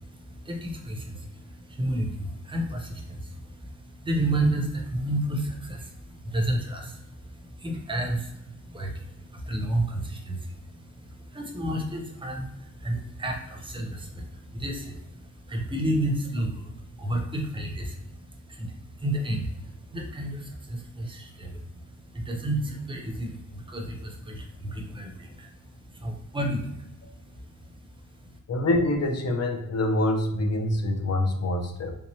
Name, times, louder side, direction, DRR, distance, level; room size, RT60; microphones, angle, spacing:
voice 1, 0.0-28.4, right 1 dB, 15° right, 2 dB, 0.6 m, -32 dB
voice 2, 28.5-31.9, left 1 dB, 50° left, 3 dB, 0.6 m, -25 dB
3.4 x 2.8 x 3.0 m, 0.81 s
wide cardioid pair, 150°, 33 cm